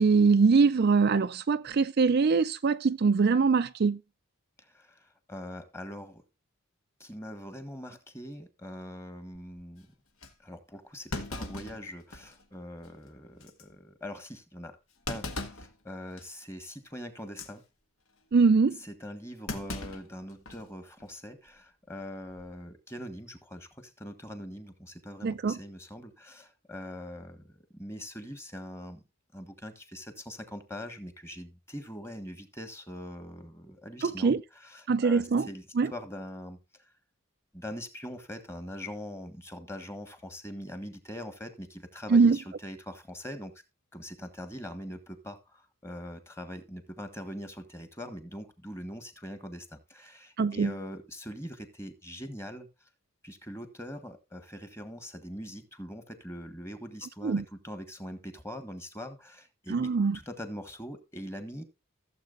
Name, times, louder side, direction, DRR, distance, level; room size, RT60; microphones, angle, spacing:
voice 1, 0.0-4.0 18.3-18.8 25.2-25.6 34.0-34.4 34.9-35.5 35.8-35.9 42.1-42.4 50.4-50.7 57.2-57.4 59.7-60.2, right 4 dB, 50° right, 0.4 m, -23 dB
voice 2, 4.7-6.2 7.0-9.9 10.4-14.8 15.1-17.6 18.8-29.0 29.3-35.6 35.9-36.9 37.5-43.5 43.9-52.7 53.2-61.6, equal, 10° left, 1.5 m, -42 dB
Thump thud, 9.4-9.6 10.2-10.3 11.1-12.4 12.8-12.9 13.4-13.6 15.1-15.7 16.2-16.4 17.2-17.5 19.5-20.7 21.0-21.1 22.2-22.6, left 2 dB, 70° left, 1.7 m, -38 dB
15.5 x 7.5 x 2.5 m
head